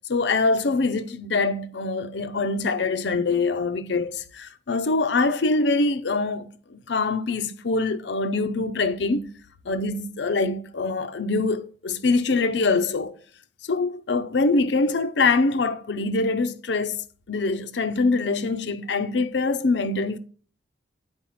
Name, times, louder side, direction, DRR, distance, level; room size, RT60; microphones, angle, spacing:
voice 1, 0.1-9.3 9.7-13.2 13.7-17.0 17.3-20.2, left 3 dB, 90° left, 0.6 m, -24 dB
8.8 x 4.7 x 4.2 m
head